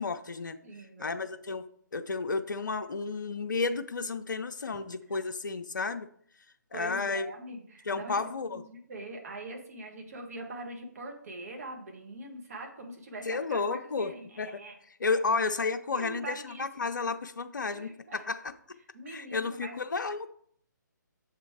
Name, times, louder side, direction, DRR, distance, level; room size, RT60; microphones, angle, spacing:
voice 1, 0.0-0.6 1.0-6.1 6.7-7.3 7.9-8.6 13.3-14.6 15.0-18.4 19.1-20.3, left 4 dB, 70° left, 7 dB, 0.5 m, -32 dB
voice 2, 0.6-1.3 6.7-14.7 15.9-16.7 17.7-18.3 18.9-19.8, right 2 dB, 50° right, 1 dB, 1.6 m, -43 dB
7.1 x 3.7 x 4.7 m, 0.62 s
figure-of-eight pair, 140°, 11 cm